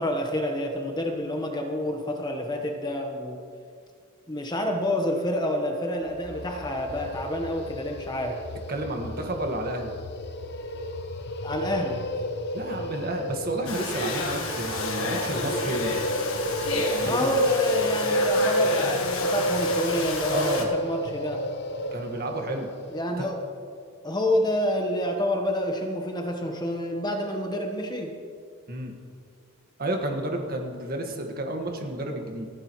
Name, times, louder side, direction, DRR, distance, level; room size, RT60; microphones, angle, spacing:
voice 1, 0.0-3.4 4.3-8.4 11.4-12.0 17.0-21.4 22.9-23.4 24.0-28.1, equal, 20° left, 3 dB, 1.1 m, -28 dB
sound 1, 6.1-23.1, equal, 50° left, 0.8 m, -30 dB
voice 2, 8.7-9.9 12.5-17.3 20.3-20.8 21.9-22.7 23.2-23.3 28.7-28.9 29.8-32.5, right 1 dB, 45° right, 2 dB, 1.6 m, -31 dB
Domestic sounds home sounds, 13.7-20.7, left 2 dB, 70° left, 1.4 m, -30 dB
29.0 x 9.8 x 3.1 m, 2.2 s
head